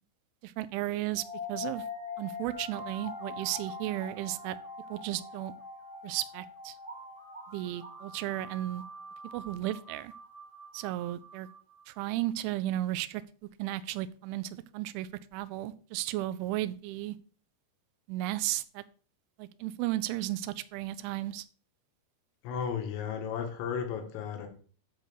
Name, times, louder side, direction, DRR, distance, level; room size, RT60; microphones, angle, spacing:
voice 1, 0.4-1.8 2.2-4.6 4.9-5.5 6.0-6.8 7.5-8.8 9.3-10.1 10.7-11.5 11.9-13.2 13.6-17.2 18.1-18.8 19.4-21.5, right 15 dB, 85° right, 2.9 m, -34 dB
sound 1, 1.1-12.1, left 3 dB, 55° right, 0.8 m, -44 dB
voice 2, 22.4-24.5, left 7 dB, 80° left, 4.2 m, -34 dB
10.5 x 4.1 x 6.8 m
omnidirectional pair, 5.8 m